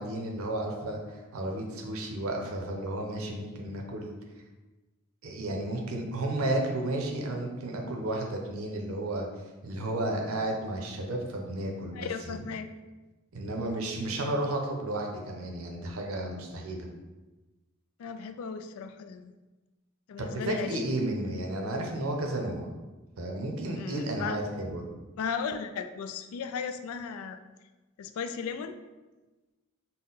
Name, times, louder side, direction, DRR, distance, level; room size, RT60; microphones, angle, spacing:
voice 1, 0.0-4.1 5.2-9.3 9.6-12.4 13.3-16.9 20.2-22.7 23.2-24.9, right 1 dB, 90° right, 1 dB, 0.6 m, -32 dB
voice 2, 11.9-12.7 18.0-19.3 20.1-20.8 23.8-24.4 25.2-27.4 28.0-28.8, left 6 dB, 85° left, 11 dB, 0.3 m, -36 dB
3.8 x 2.1 x 3.9 m, 1.2 s
head